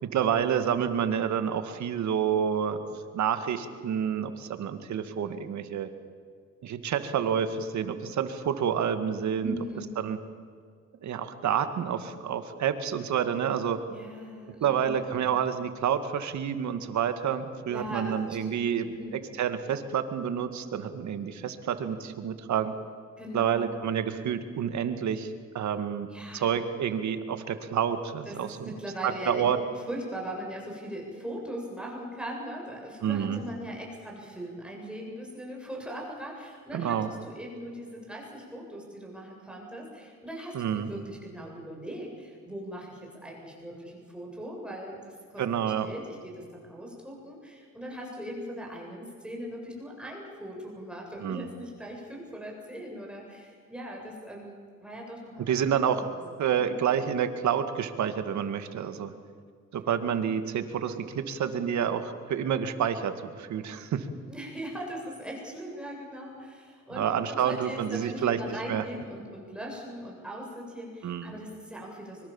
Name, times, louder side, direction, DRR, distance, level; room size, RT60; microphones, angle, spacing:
voice 1, 0.0-2.8 3.1-5.9 6.6-9.6 10.0-10.2 11.0-13.8 14.6-22.7 23.3-26.1 26.3-28.7 29.0-29.6 33.0-33.4 36.7-37.1 40.5-40.9 45.4-45.9 51.2-51.5 55.5-56.1 56.4-59.1 59.7-64.1 66.9-68.4 68.7-68.8 71.0-71.3, right 8 dB, 70° right, 9 dB, 2.2 m, -29 dB
voice 2, 9.4-10.0 13.9-15.1 17.7-18.4 18.9-19.1 23.2-23.7 26.1-26.6 28.3-29.5 29.7-55.5 55.9-56.2 56.7-56.8 64.3-72.3, equal, 5° right, -2 dB, 8.0 m, -40 dB
24.5 x 23.5 x 7.3 m, 2.1 s
cardioid pair, 90°, 30 cm